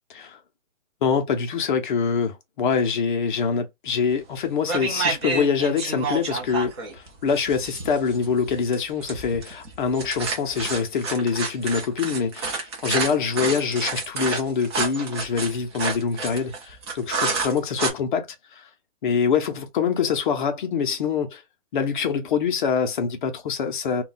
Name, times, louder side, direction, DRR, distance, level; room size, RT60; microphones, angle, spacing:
voice 1, 1.0-18.7 19.0-21.4 21.7-24.0, left 6 dB, 40° left, 0.6 m, -25 dB
sound 1, 4.1-4.3 4.7-17.9, right 4 dB, 20° right, 0.6 m, -29 dB
2.3 x 2.2 x 3.9 m
hypercardioid pair, 155°, 39 cm